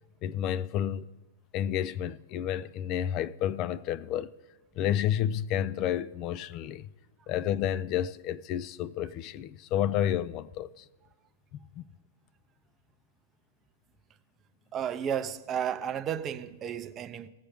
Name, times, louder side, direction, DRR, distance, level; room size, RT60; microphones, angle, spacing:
voice 1, 0.2-1.1 1.5-4.3 4.8-6.9 7.3-10.9 11.5-11.8, left 10 dB, 35° left, 0.3 m, -30 dB
voice 2, 14.7-17.3, right 8 dB, 25° right, 0.5 m, -33 dB
18.0 x 7.4 x 3.4 m
hypercardioid pair, 145°, 0 cm